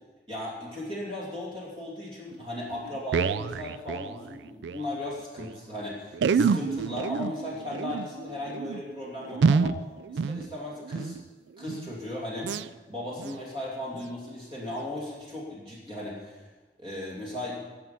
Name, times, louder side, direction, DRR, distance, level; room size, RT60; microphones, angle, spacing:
voice 1, 0.3-9.8 10.1-11.2 11.6-16.4 16.8-17.6, left 1 dB, 30° right, -5 dB, 2.9 m, -36 dB
sound 1, 2.3-2.4 2.7-4.8 5.1-5.2 5.4-5.5 6.1-11.2 11.6-12.0 12.4-12.7 13.2-13.4 13.9-14.1 14.7-14.8, right 5 dB, 85° right, 0.4 m, -28 dB
20.0 x 7.4 x 5.8 m, 1.2 s
head